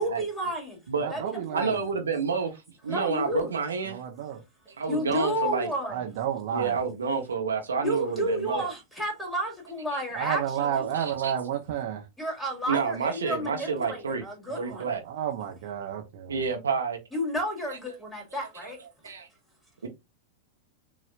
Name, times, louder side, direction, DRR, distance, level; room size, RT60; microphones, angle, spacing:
voice 1, 0.0-0.8 1.1-1.7 2.9-3.5 4.9-6.0 7.8-10.9 12.2-14.9 17.1-18.8, equal, 5° left, 2.6 m, -31 dB
voice 2, 1.0-1.8 3.9-4.4 5.9-6.8 10.1-12.0 14.5-16.4, right 9 dB, 50° right, 0.8 m, -31 dB
voice 3, 1.5-4.0 4.8-5.7 6.5-8.7 9.9-10.0 10.9-11.3 12.7-14.2 14.6-15.0 16.3-17.0 18.6-18.7 19.0-19.3 19.8-19.9, right 5 dB, 70° right, 1.0 m, -29 dB
6.6 x 3.1 x 2.5 m
figure-of-eight pair, 90°, 0 cm